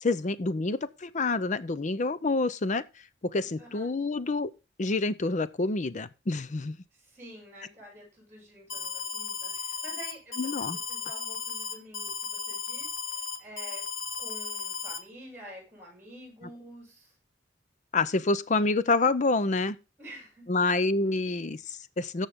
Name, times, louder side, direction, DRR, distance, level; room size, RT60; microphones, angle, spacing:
voice 1, 0.0-2.8 3.2-4.5 4.8-6.8 10.4-10.8 17.9-19.8 20.5-22.3, left 3 dB, 40° left, 0.6 m, -27 dB
voice 2, 3.6-3.9 6.9-13.8 14.2-17.1 20.0-20.5, equal, 15° right, 6.6 m, -48 dB
Alarm, 8.7-15.0, left 5 dB, 75° left, 1.7 m, -35 dB
13.5 x 5.5 x 3.6 m
head